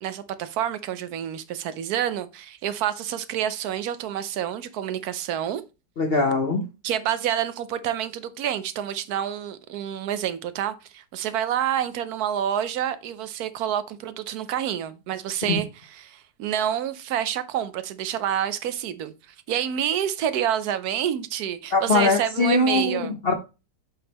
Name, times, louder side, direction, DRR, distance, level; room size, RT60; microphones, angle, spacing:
voice 1, 0.0-5.6 6.8-15.7 16.0-19.1 19.5-23.1, right 10 dB, 70° right, 1.0 m, -28 dB
voice 2, 6.0-6.6 21.7-23.3, left 2 dB, 55° left, 0.6 m, -21 dB
7.7 x 3.6 x 4.1 m
omnidirectional pair, 1.9 m